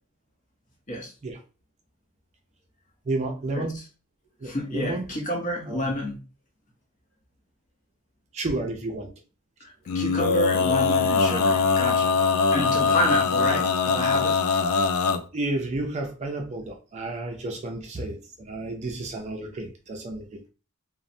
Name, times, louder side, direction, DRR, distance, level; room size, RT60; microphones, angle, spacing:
voice 1, 3.1-3.8 4.4-5.1 5.7-5.8 8.3-9.1 15.3-20.5, right 2 dB, 30° right, 3 dB, 0.4 m, -31 dB
voice 2, 4.4-6.2 9.6-12.2 12.5-14.4, left 1 dB, 35° left, 0 dB, 0.8 m, -29 dB
Male singing, 9.9-15.2, left 5 dB, 70° left, 0.3 m, -22 dB
3.0 x 2.0 x 2.5 m, 0.34 s
head